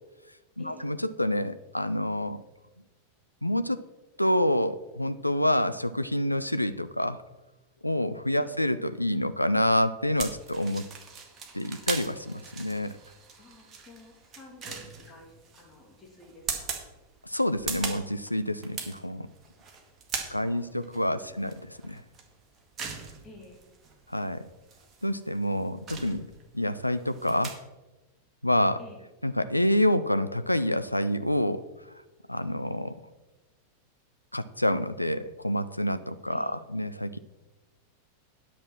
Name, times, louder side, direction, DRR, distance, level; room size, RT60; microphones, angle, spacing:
voice 1, 0.6-2.4 3.4-3.8 4.2-7.2 7.8-10.9 11.5-13.0 17.2-19.3 20.3-22.0 24.1-24.5 25.0-26.3 26.5-27.6 28.4-28.8 29.2-31.6 32.3-33.0 34.3-37.2, left 1 dB, 85° left, 12 dB, 0.4 m, -27 dB
sound 1, 10.2-27.5, right 5 dB, 25° right, 1.9 m, -40 dB
voice 2, 13.4-16.7 20.3-21.5 23.2-23.6 28.8-29.0 36.3-36.6, left 2 dB, 25° left, -1 dB, 2.6 m, -51 dB
10.0 x 6.3 x 6.0 m, 1.1 s
figure-of-eight pair, 90°, 0 cm